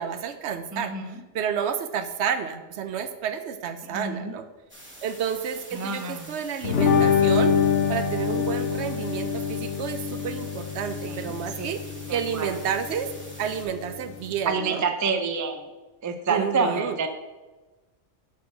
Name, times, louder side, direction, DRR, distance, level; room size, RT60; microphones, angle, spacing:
voice 1, 0.0-0.9 1.3-4.5 5.0-7.6 7.9-11.8 12.1-13.1 13.4-14.8 16.3-17.0, right 7 dB, 70° right, 10 dB, 0.8 m, -30 dB
voice 2, 0.7-1.2 3.8-4.3 5.7-6.4 11.0-11.7 12.1-12.6 14.5-15.7 16.0-17.1, right 4 dB, 30° right, 6 dB, 0.3 m, -28 dB
sound 1, 4.7-13.6, equal, 10° right, 1.2 m, -46 dB
sound 2, 6.6-14.4, left 6 dB, 75° left, 1.0 m, -26 dB
6.4 x 4.3 x 6.0 m, 1.2 s
omnidirectional pair, 1.2 m